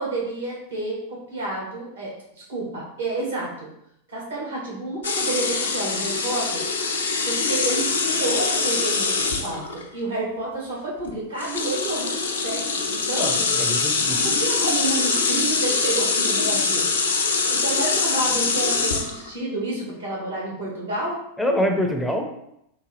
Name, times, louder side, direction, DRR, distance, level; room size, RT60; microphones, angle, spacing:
voice 1, 0.0-2.1 2.5-3.7 4.1-6.6 7.2-13.4 14.2-16.9 17.5-21.2, right 2 dB, 70° right, -4 dB, 1.3 m, -30 dB
sound 1, 5.0-9.8 11.0-11.1 11.4-19.3, left 4 dB, 65° left, 0.4 m, -23 dB
voice 2, 13.1-14.2 21.4-22.2, equal, ahead, 2 dB, 0.5 m, -25 dB
3.8 x 2.2 x 3.2 m, 0.79 s
figure-of-eight pair, 90°, 0 cm